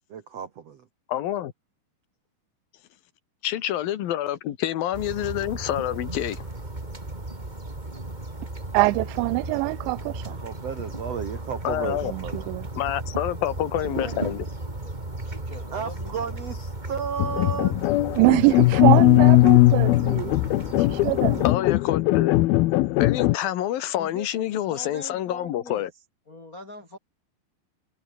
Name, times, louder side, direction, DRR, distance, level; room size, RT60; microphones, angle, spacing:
voice 1, 0.1-0.9 10.4-12.5 15.7-18.1, right 7 dB, 65° right, 1.6 m, -33 dB
voice 2, 1.1-1.5 3.4-6.5 11.6-12.1 12.8-14.4 21.4-22.4 22.9-25.9, left 12 dB, 60° left, 2.9 m, -27 dB
sound 1, 4.9-21.5, right 2 dB, 10° right, 2.6 m, -35 dB
voice 3, 8.7-10.4 11.8-12.7 18.2-20.3 20.9-21.5, right 25 dB, 85° right, 2.8 m, -24 dB
voice 4, 13.7-14.3 14.8-15.0 15.2-16.2 24.0-25.9 26.3-27.0, left 2 dB, 20° left, 4.1 m, -43 dB
sound 2, 17.2-23.4, left 18 dB, 85° left, 2.1 m, -19 dB
omnidirectional pair, 5.3 m